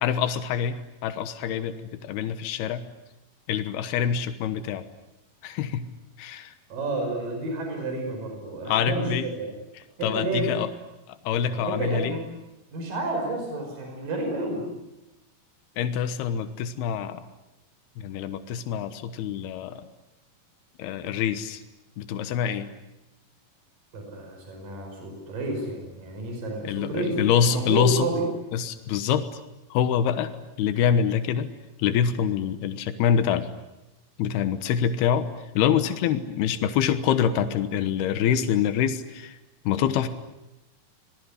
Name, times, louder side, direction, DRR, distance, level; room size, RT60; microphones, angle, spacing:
voice 1, 0.0-2.8 3.5-4.8 5.4-5.9 6.2-6.5 8.7-9.3 10.0-10.7 11.1-12.1 15.8-17.2 18.0-19.9 20.8-21.6 22.0-22.7 26.6-28.1 28.5-29.3 29.7-30.3 30.6-31.5 31.8-33.5 34.2-39.4 39.6-40.1, left 8 dB, 85° left, 10 dB, 3.2 m, -25 dB
voice 2, 6.7-9.5 10.0-10.5 11.4-12.2 12.7-14.7 23.9-27.2 27.4-28.3, right 2 dB, 60° right, 2 dB, 7.1 m, -30 dB
26.5 x 20.0 x 9.8 m, 0.96 s
omnidirectional pair, 4.4 m